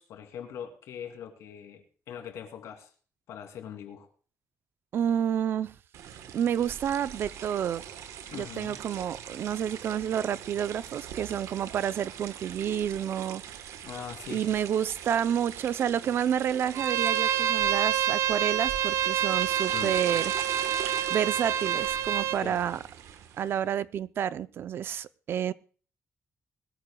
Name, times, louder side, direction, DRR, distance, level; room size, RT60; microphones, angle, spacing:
voice 1, 0.0-2.9 3.3-4.1 8.3-8.8 13.8-14.6 19.7-20.0 22.4-22.6 23.4-23.5, left 9 dB, 80° left, 2.8 m, -42 dB
voice 2, 4.9-5.7 6.3-7.8 8.3-13.4 14.3-20.3 21.1-22.8 23.4-25.5, right 9 dB, 50° right, 0.5 m, -29 dB
sound 1, 5.9-23.6, right 9 dB, 85° right, 1.2 m, -42 dB
Bowed string instrument, 16.7-22.4, right 10 dB, 70° right, 1.0 m, -27 dB
21.0 x 14.0 x 2.3 m
cardioid pair, 175°, 5 cm